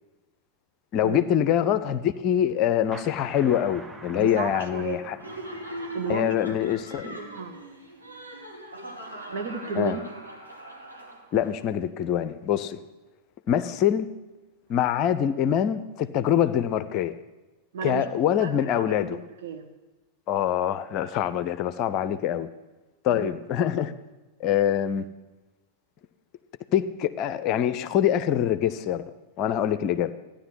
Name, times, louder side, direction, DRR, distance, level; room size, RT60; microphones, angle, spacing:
voice 1, 0.9-5.2 6.1-7.1 9.8-10.0 11.3-12.8 13.5-14.1 14.7-17.2 17.8-19.2 20.3-22.5 23.0-23.9 24.4-25.0 26.7-29.0 29.4-30.1, left 10 dB, 40° left, 13 dB, 0.7 m, -24 dB
sound 1, 2.9-8.3, right 2 dB, 10° right, 1.0 m, -47 dB
voice 2, 4.1-5.0 5.9-6.3 7.0-7.6 9.3-10.0 17.7-19.7 23.1-23.3, right 4 dB, 55° right, 4 dB, 1.6 m, -33 dB
Laughter, 5.2-11.5, right 1 dB, 90° right, 2.4 m, -41 dB
14.5 x 10.5 x 5.8 m, 1.1 s
figure-of-eight pair, 90°, 0 cm